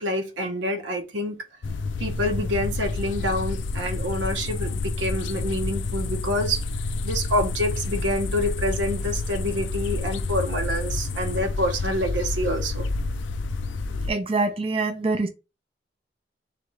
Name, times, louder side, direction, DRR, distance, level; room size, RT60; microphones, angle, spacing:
voice 1, 0.0-1.4 2.0-6.6 7.0-12.9, equal, 90° right, 0.9 m, -27 dB
sound 1, 1.6-14.1, left 3 dB, 85° left, 0.4 m, -29 dB
voice 2, 14.1-15.3, right 3 dB, 30° right, 0.5 m, -25 dB
3.9 x 3.3 x 3.2 m
head